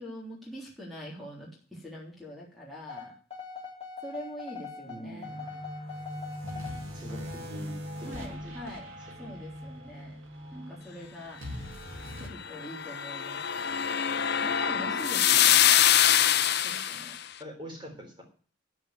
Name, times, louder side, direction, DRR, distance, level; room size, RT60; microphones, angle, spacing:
voice 1, 0.0-3.1 4.0-5.3 8.0-8.9 9.2-10.2 10.5-11.6 12.2-13.7 14.4-15.7 16.6-17.2, equal, ahead, -6 dB, 3.5 m, -43 dB
sound 1, 2.9-6.9, left 5 dB, 30° left, 4.0 m, -42 dB
voice 2, 4.8-5.6 6.9-7.7 8.0-8.6 9.2-9.3 17.4-18.2, equal, 25° right, 2 dB, 3.8 m, -44 dB
sound 2, 5.2-12.3, equal, 85° right, 2.5 m, -41 dB
sound 3, 12.5-17.2, left 10 dB, 55° left, 0.7 m, -24 dB
12.5 x 5.8 x 7.8 m, 0.43 s
head